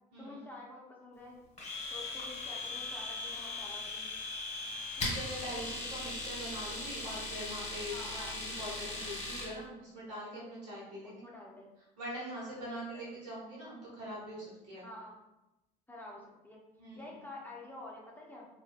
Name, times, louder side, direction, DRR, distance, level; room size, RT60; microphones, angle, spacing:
voice 1, 0.2-1.4 1.9-4.1 7.9-8.3 11.0-11.7 12.7-13.1 14.8-15.2 15.9-16.6 16.9-18.5, left 2 dB, 10° left, -4 dB, 0.8 m, -49 dB
Domestic sounds home sounds, 1.6-9.5, left 2 dB, 35° left, 1.0 m, -39 dB
voice 2, 5.0-11.3 12.0-14.8 16.8-17.2, equal, 85° right, -7 dB, 1.1 m, -43 dB
2.5 x 2.5 x 2.3 m, 0.93 s
hypercardioid pair, 50°, 20 cm